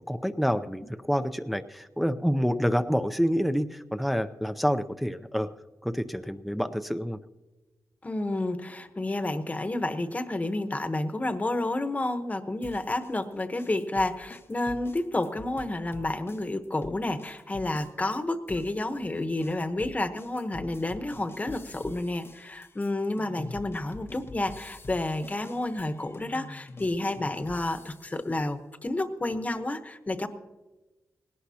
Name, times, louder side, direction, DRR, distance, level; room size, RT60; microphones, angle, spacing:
voice 1, 0.1-5.5 5.8-7.2, equal, ahead, 9 dB, 0.5 m, -28 dB
voice 2, 8.0-30.3, left 2 dB, 25° left, 8 dB, 1.0 m, -30 dB
sound 1, 12.6-18.2 18.5-28.2, left 3 dB, 40° left, 0.8 m, -46 dB
19.0 x 17.5 x 2.8 m, 1.2 s
wide cardioid pair, 105°, 6 cm